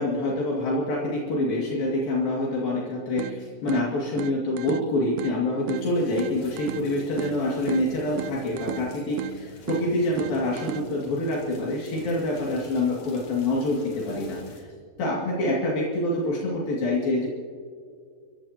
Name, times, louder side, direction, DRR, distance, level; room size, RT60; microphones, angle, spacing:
voice 1, 0.0-14.7 15.0-17.3, left 2 dB, 70° left, -4 dB, 4.2 m, -26 dB
sound 1, 3.2-11.2, right 13 dB, 90° right, 1.9 m, -36 dB
sound 2, 5.8-14.6, left 3 dB, 55° left, 3.6 m, -47 dB
29.0 x 15.5 x 2.9 m, 2.1 s
omnidirectional pair, 4.4 m